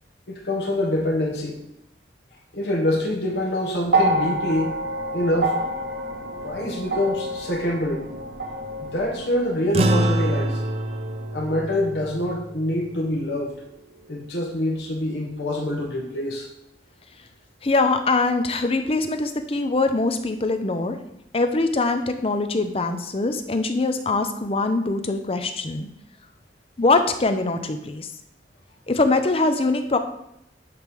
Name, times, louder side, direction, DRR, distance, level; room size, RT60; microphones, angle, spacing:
voice 1, 0.3-1.6 2.5-4.7 5.1-5.5 6.4-8.1 8.8-10.7 11.3-13.6 14.1-16.5, left 1 dB, 70° left, 2 dB, 1.3 m, -25 dB
sound 1, 3.9-12.2 13.3-13.4, right 1 dB, 85° right, 1.5 m, -29 dB
sound 2, 9.7-14.4, right 1 dB, 35° right, 0.5 m, -26 dB
voice 2, 17.6-21.0 21.3-25.9 26.8-28.1 28.9-30.0, left 3 dB, 35° left, 8 dB, 0.6 m, -22 dB
9.7 x 3.2 x 5.3 m, 0.80 s
head